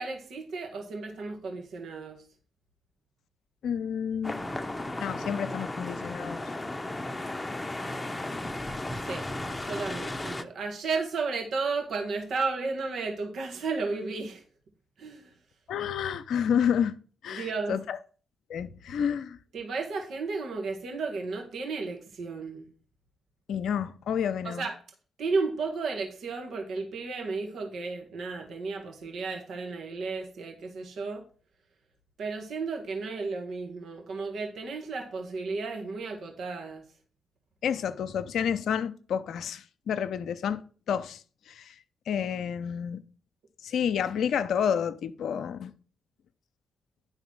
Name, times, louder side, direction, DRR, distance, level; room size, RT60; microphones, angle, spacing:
voice 1, 0.0-2.2 8.9-9.2 9.6-14.4 15.0-15.3 17.3-17.8 19.5-22.7 24.4-24.7 25.2-31.2 32.2-36.8, right 4 dB, 65° right, 1.5 m, -33 dB
voice 2, 3.6-4.4 5.0-6.4 15.7-16.9 17.2-18.0 18.5-19.4 23.5-24.7 37.6-40.6 40.9-41.2 41.5-41.7 42.1-43.0 43.6-45.7, left 8 dB, 70° left, 0.5 m, -29 dB
sound 1, 4.2-10.4, left 1 dB, 20° left, 0.8 m, -35 dB
9.8 x 3.9 x 6.1 m
hypercardioid pair, 45°, 0 cm